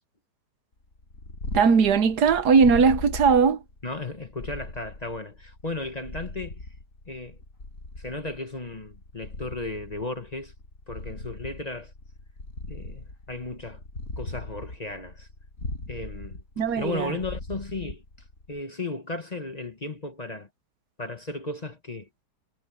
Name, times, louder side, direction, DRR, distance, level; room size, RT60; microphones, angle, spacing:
Purr, 0.9-18.6, left 2 dB, 50° left, 5.7 m, -39 dB
voice 1, 1.5-3.6 16.6-17.1, right 5 dB, 75° right, 1.6 m, -19 dB
voice 2, 3.8-6.6 7.1-7.4 8.0-10.5 10.9-11.9 12.7-13.8 14.2-15.3 15.9-16.4 16.7-18.0 18.5-20.5 21.0-22.1, left 2 dB, 25° left, 1.3 m, -35 dB
omnidirectional pair, 1.8 m